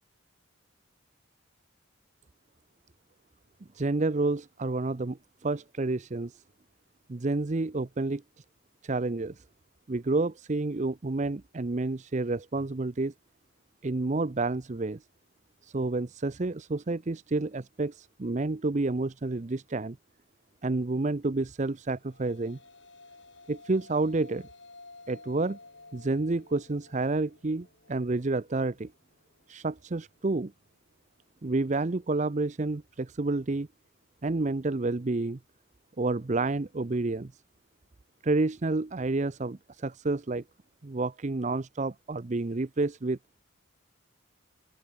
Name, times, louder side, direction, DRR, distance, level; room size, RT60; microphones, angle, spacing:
voice 1, 3.7-6.4 7.1-8.2 8.8-9.4 9.9-13.1 13.8-15.0 15.6-20.0 20.6-22.6 23.5-24.5 25.1-25.6 25.9-28.9 29.5-30.5 31.4-33.7 34.2-35.4 36.0-37.3 38.2-40.4 40.8-43.2, right 2 dB, 35° right, 0.6 m, -29 dB
sound 1, 21.8-30.4, left 3 dB, 60° left, 6.2 m, -54 dB
open air
head